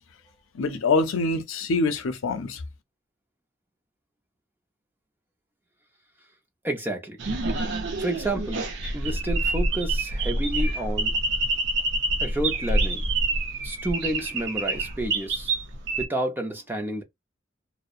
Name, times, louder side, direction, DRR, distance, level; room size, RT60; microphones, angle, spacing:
voice 1, 0.5-2.6, left 3 dB, 90° left, 0.5 m, -25 dB
voice 2, 6.6-7.4 8.0-8.7 8.9-11.2 12.2-13.0 13.6-15.5 16.0-17.0, right 1 dB, 10° right, 0.4 m, -30 dB
sound 1, 7.2-16.0, right 2 dB, 60° right, 0.5 m, -27 dB
2.7 x 2.0 x 2.3 m
head